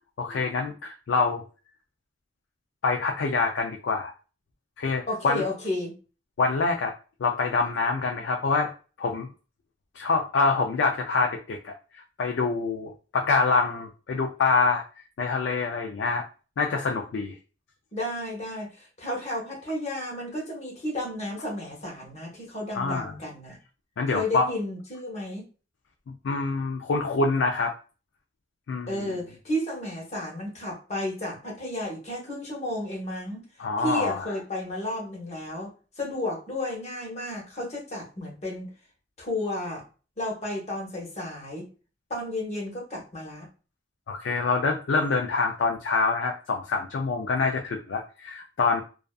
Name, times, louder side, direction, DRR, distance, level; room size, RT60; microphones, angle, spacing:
voice 1, 0.2-1.4 2.8-4.1 4.8-5.4 6.4-6.9 7.2-8.7 9.0-9.3 10.0-14.8 15.2-16.2 16.6-17.3 22.7-23.1 24.0-24.5 26.2-27.7 28.7-29.2 33.6-34.3 44.1-48.8, left 4 dB, 80° left, 2 dB, 0.4 m, -26 dB
voice 2, 5.1-5.9 17.9-23.6 24.1-25.4 28.9-33.4 33.8-35.7 36.0-38.7 39.2-39.8 40.2-41.7 42.1-43.5, left 1 dB, 35° left, -1 dB, 0.9 m, -32 dB
2.5 x 2.4 x 2.3 m, 0.35 s
head